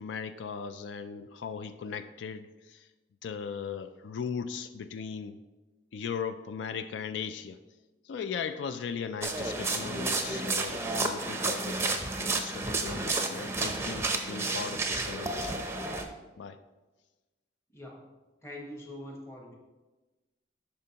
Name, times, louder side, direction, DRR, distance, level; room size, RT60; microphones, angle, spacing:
voice 1, 0.0-2.9 3.2-5.4 5.9-7.6 8.1-15.6 16.4-16.6, left 6 dB, 85° left, 10 dB, 0.3 m, -38 dB
chuze v ulici s frekventovanou dopravou na mokrem snehu, 9.2-16.0, right 3 dB, 15° right, 0.5 m, -31 dB
voice 2, 17.7-19.6, left 1 dB, 15° left, 0 dB, 1.0 m, -44 dB
11.0 x 4.3 x 2.8 m, 1.2 s
head